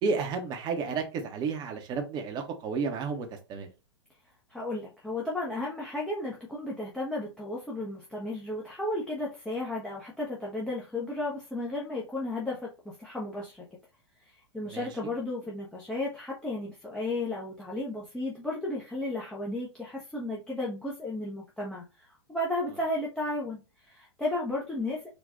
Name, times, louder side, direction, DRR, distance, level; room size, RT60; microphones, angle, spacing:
voice 1, 0.0-3.7 14.7-15.1, right 5 dB, 30° right, 4 dB, 1.0 m, -32 dB
voice 2, 4.5-13.6 14.2-25.1, left 2 dB, 5° left, -5 dB, 0.9 m, -34 dB
4.0 x 2.5 x 3.5 m, 0.28 s
figure-of-eight pair, 100°, 15 cm